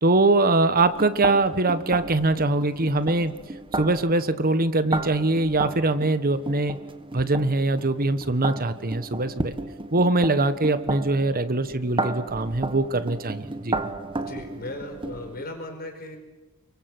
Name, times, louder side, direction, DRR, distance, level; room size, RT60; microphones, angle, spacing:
voice 1, 0.0-3.3 3.7-6.8 7.1-9.5 9.9-13.8, right 2 dB, 40° right, 11 dB, 1.4 m, -22 dB
sound 1, 0.8-15.4, right 2 dB, 25° right, 1.4 m, -34 dB
voice 2, 14.1-16.2, left 1 dB, 45° left, 4 dB, 5.0 m, -37 dB
29.5 x 23.5 x 8.0 m, 1.1 s
head